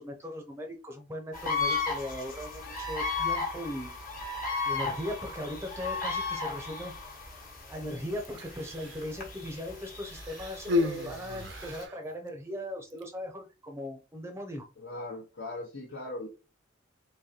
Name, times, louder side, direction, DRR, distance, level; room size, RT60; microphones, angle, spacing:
voice 1, 0.0-3.9 4.6-6.9 7.7-14.7, left 1 dB, 15° right, 4 dB, 0.6 m, -38 dB
sound 1, 1.3-11.8, left 4 dB, 45° left, 1.2 m, -35 dB
Human voice, 8.3-9.1 10.0-12.0 12.9-13.1, left 3 dB, 65° right, 0.5 m, -33 dB
voice 2, 14.8-16.3, left 2 dB, 70° left, -3 dB, 1.0 m, -39 dB
3.9 x 3.0 x 2.8 m, 0.29 s
head